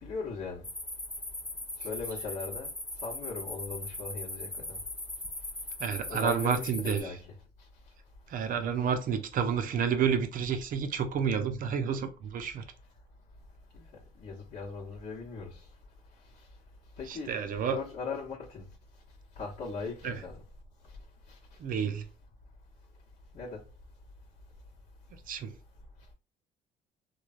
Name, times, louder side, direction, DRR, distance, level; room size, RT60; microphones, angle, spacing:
voice 1, 0.0-0.6 1.8-2.7 3.0-4.8 6.1-7.4 13.7-13.9 14.2-15.7 17.0-17.4 17.7-18.7 19.4-20.4 21.3-21.4 23.3-23.6, left 4 dB, 55° left, 1.0 m, -39 dB
sound 1, 0.6-7.0, left 1 dB, 5° left, 0.9 m, -39 dB
voice 2, 5.8-7.1 8.3-12.6 17.1-17.8 20.0-20.2 21.6-22.1 25.3-25.5, right 7 dB, 55° right, 0.6 m, -30 dB
3.1 x 2.2 x 2.4 m
cardioid pair, 110°, 17 cm